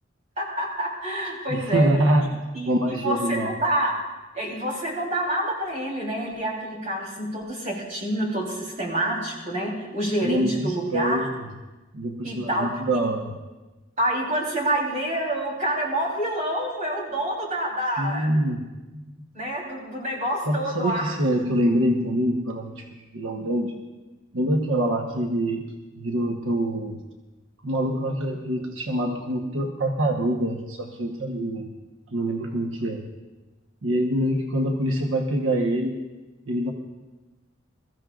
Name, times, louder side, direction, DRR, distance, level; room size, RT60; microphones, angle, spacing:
voice 1, 0.4-1.9 2.5-3.9 4.3-11.2 12.2-12.7 14.0-18.3 19.3-21.1, right 1 dB, 35° right, -2 dB, 3.5 m, -27 dB
voice 2, 1.5-2.3 2.6-3.5 10.2-11.5 11.9-13.3 18.0-18.6 18.9-19.1 20.5-22.8 23.1-23.8 24.3-25.6 26.0-26.9 27.6-31.7 32.1-33.0 33.8-36.0 36.5-36.7, right 1 dB, 90° right, 1 dB, 1.1 m, -25 dB
22.0 x 14.0 x 2.5 m, 1.1 s
head